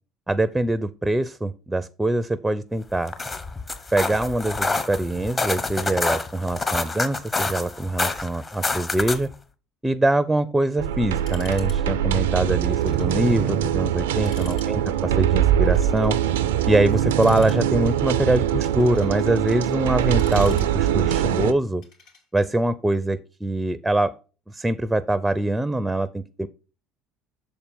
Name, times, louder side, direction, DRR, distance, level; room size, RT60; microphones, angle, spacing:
voice 1, 0.3-3.1 3.9-9.3 9.8-16.2 16.7-21.8 22.3-24.1 24.5-26.5, right 1 dB, 10° right, 16 dB, 0.5 m, -23 dB
sound 1, 2.9-9.3, left 3 dB, 25° left, 1.0 m, -27 dB
sound 2, 10.8-21.5, right 11 dB, 80° right, 0.4 m, -22 dB
sound 3, 11.2-11.8 12.0-12.1 12.8-13.2 13.6-13.7 14.1-14.7 15.6-16.2 17.1-17.9 18.5-19.3 19.9-21.1 21.8-22.5, left 5 dB, 70° left, 2.8 m, -48 dB
6.7 x 4.3 x 5.4 m, 0.35 s
hypercardioid pair, 65°, 0 cm